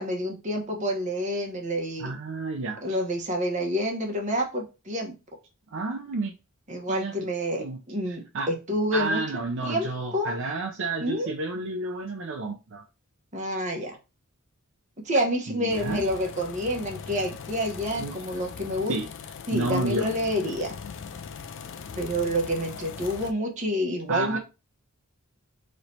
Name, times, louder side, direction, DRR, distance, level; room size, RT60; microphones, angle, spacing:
voice 1, 0.0-2.1 2.8-5.1 6.7-9.2 9.6-9.9 10.1-10.4 11.0-11.3 13.3-14.0 15.0-18.9 19.5-20.8 21.9-24.4, equal, 35° right, 1.1 m, -28 dB
voice 2, 2.0-3.0 5.7-6.3 6.9-7.1 7.6-7.8 8.1-8.5 8.9-12.8 15.5-16.1 18.0-18.2 18.8-19.1 19.5-20.1 24.1-24.4, right 3 dB, 60° right, 0.5 m, -31 dB
sound 1, 15.7-23.3, left 6 dB, 60° left, 0.4 m, -40 dB
3.2 x 3.0 x 4.0 m
head